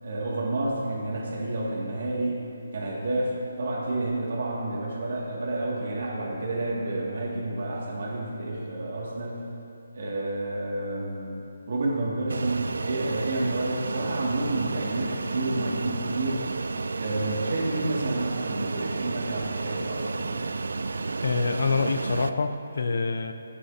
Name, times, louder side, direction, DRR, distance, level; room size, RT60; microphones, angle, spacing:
voice 1, 0.0-9.5 9.9-16.5 17.0-20.4, right 2 dB, 55° right, -4 dB, 2.5 m, -30 dB
Fixed-wing aircraft airplane, 12.3-22.3, right 3 dB, 80° right, 0.4 m, -32 dB
voice 2, 21.2-23.3, left 4 dB, 65° left, 7 dB, 0.7 m, -26 dB
15.0 x 9.7 x 2.9 m, 2.7 s
hypercardioid pair, 170°, 0 cm